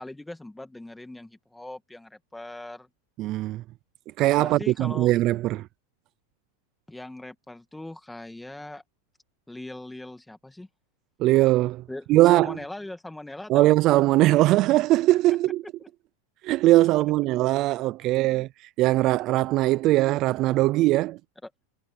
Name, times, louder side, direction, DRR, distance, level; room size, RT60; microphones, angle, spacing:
voice 1, 0.0-2.9 4.4-5.1 6.9-8.8 9.5-10.7 11.9-13.7 15.8-15.9 18.2-18.5 21.4-21.5, left 1 dB, 5° left, 2.1 m, -40 dB
voice 2, 3.2-3.6 4.2-5.7 11.2-11.8 12.1-12.6 13.5-15.6 16.4-21.2, right 17 dB, 35° right, 0.4 m, -21 dB
supercardioid pair, 160°, 0 cm